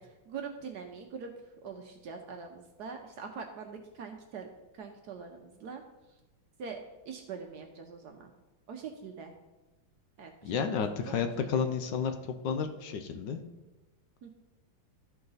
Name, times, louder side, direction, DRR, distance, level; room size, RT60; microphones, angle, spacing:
voice 1, 0.0-1.3 1.6-4.5 4.7-5.8 6.6-8.3 8.7-9.3 10.2-11.6 14.2-14.3, right 5 dB, 65° right, 4 dB, 1.1 m, -43 dB
voice 2, 10.4-12.1 12.4-13.4, left 6 dB, 70° left, 7 dB, 1.2 m, -31 dB
13.5 x 4.7 x 4.0 m, 1.1 s
omnidirectional pair, 2.2 m